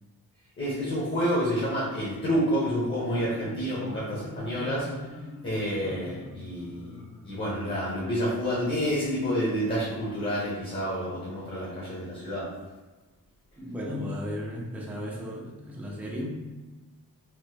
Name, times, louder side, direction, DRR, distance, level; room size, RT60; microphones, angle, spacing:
voice 1, 0.6-4.9 5.4-6.9 7.2-12.5, equal, 35° left, -6 dB, 0.7 m, -29 dB
Marimba xylophone, 2.7-8.2, left 1 dB, 60° left, 1.2 m, -44 dB
voice 2, 13.6-16.5, left 1 dB, 5° right, -3 dB, 0.4 m, -35 dB
3.0 x 2.0 x 3.3 m, 1.2 s
wide cardioid pair, 150°, 36 cm